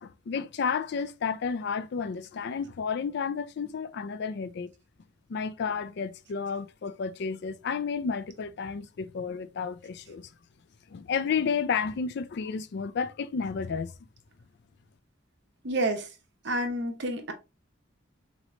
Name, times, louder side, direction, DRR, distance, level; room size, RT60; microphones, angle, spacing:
voice 1, 0.0-4.7 5.3-10.3 10.9-13.9, left 6 dB, 60° left, 0.4 m, -31 dB
voice 2, 15.6-16.1 16.4-17.3, right 1 dB, 60° right, 0.9 m, -29 dB
3.9 x 3.1 x 3.1 m
head